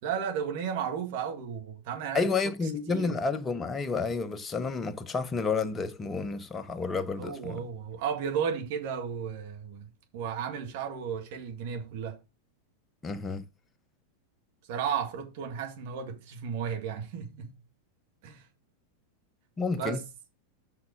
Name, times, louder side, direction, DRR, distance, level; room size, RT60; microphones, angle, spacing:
voice 1, 0.0-2.3 2.9-3.2 7.2-12.2 14.7-17.6 18.2-18.5 19.8-20.0, right 7 dB, 50° right, 2.0 m, -34 dB
voice 2, 2.1-7.7 13.0-13.4 19.6-20.0, left 4 dB, 20° left, 0.9 m, -30 dB
6.2 x 5.9 x 5.1 m
figure-of-eight pair, 90°, 0 cm